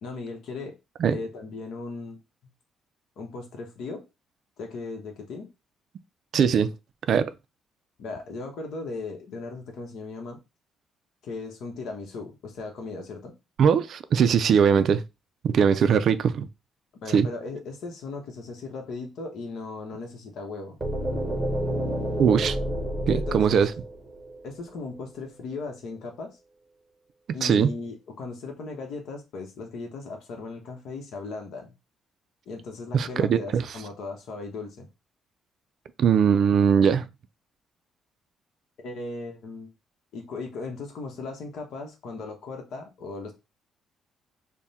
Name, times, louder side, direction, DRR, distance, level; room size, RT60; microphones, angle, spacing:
voice 1, 0.0-0.7 1.1-2.2 3.2-4.0 4.6-5.5 8.0-10.4 11.2-13.3 15.8-15.9 17.0-20.8 23.1-23.6 24.4-26.4 27.3-31.7 32.5-34.9 38.8-39.7 40.1-43.3, left 3 dB, 65° left, 0.9 m, -37 dB
voice 2, 6.3-6.7 7.1-7.3 13.6-15.0 15.4-16.5 17.1-17.3 22.2-22.6 23.1-23.7 27.3-27.7 32.9-33.6 36.0-37.1, right 7 dB, 55° right, 0.3 m, -20 dB
sound 1, 20.8-24.7, equal, 10° right, 0.8 m, -29 dB
3.5 x 2.1 x 4.0 m
cardioid pair, 145°, 0 cm